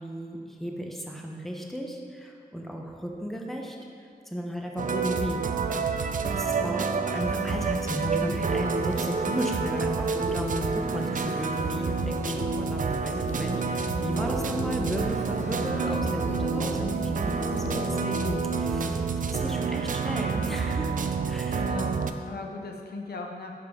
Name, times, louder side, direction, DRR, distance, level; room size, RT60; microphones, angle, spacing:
voice 1, 0.0-3.8 4.3-5.4 6.3-20.9 21.3-21.6, equal, ahead, 0 dB, 0.8 m, -34 dB
sound 1, 4.8-22.1, right 5 dB, 55° right, 0.4 m, -29 dB
voice 2, 6.4-6.8 21.5-23.5, left 3 dB, 90° left, 2 dB, 0.7 m, -38 dB
sound 2, 7.0-19.0, left 3 dB, 45° left, 0.8 m, -37 dB
5.2 x 5.1 x 4.9 m, 2.4 s
wide cardioid pair, 70°, 16 cm